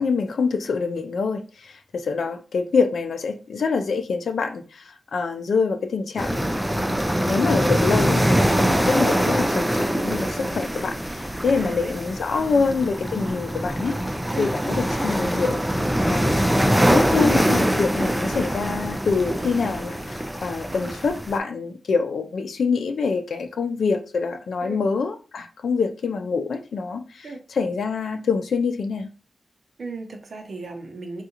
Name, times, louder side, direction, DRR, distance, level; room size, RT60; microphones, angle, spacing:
voice 1, 0.0-6.6 7.3-15.7 16.1-16.6 16.9-29.1, left 4 dB, 85° left, 0.4 m, -25 dB
sound 1, 6.2-21.4, equal, 5° right, 0.4 m, -23 dB
voice 2, 11.5-12.1 12.4-12.7 14.3-14.5 18.0-18.2 24.6-24.8 27.2-27.4 29.8-31.2, right 2 dB, 65° right, 0.7 m, -35 dB
3.6 x 2.4 x 2.9 m
wide cardioid pair, 120°, 0 cm